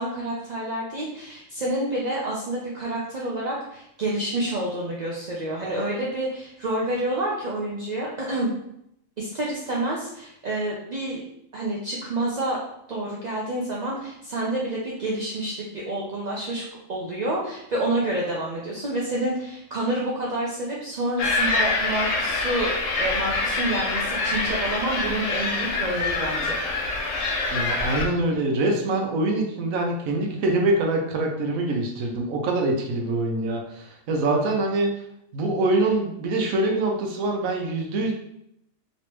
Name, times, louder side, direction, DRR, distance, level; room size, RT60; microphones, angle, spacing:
voice 1, 0.0-8.5 9.2-11.2 11.5-12.6 12.9-22.7 23.0-26.6, right 1 dB, 55° right, -4 dB, 0.4 m, -28 dB
sound 1, 21.2-28.1, left 3 dB, 70° left, 1.0 m, -25 dB
voice 2, 27.5-34.9 35.3-38.1, right 2 dB, 80° right, 1 dB, 1.1 m, -24 dB
3.2 x 2.9 x 2.9 m, 0.77 s
omnidirectional pair, 1.4 m